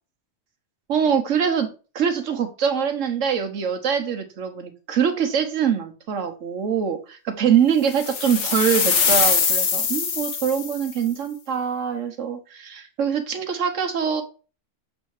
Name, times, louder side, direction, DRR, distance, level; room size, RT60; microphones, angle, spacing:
voice 1, 0.9-14.2, right 7 dB, 90° right, 5 dB, 1.4 m, -24 dB
sound 1, 7.9-10.9, left 6 dB, 70° left, 1.2 m, -22 dB
7.4 x 2.8 x 4.7 m, 0.34 s
omnidirectional pair, 1.3 m